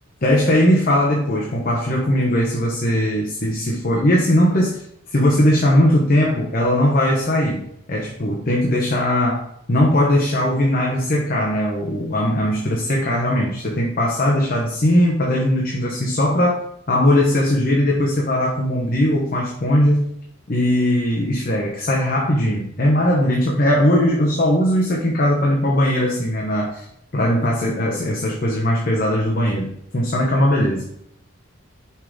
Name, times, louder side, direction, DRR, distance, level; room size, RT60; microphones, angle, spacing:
voice 1, 0.2-4.8 5.1-7.6 7.9-16.6 16.9-20.2 20.5-26.9 27.1-30.9, left 1 dB, 45° left, -3 dB, 0.9 m, -19 dB
5.6 x 4.8 x 3.7 m, 0.72 s
head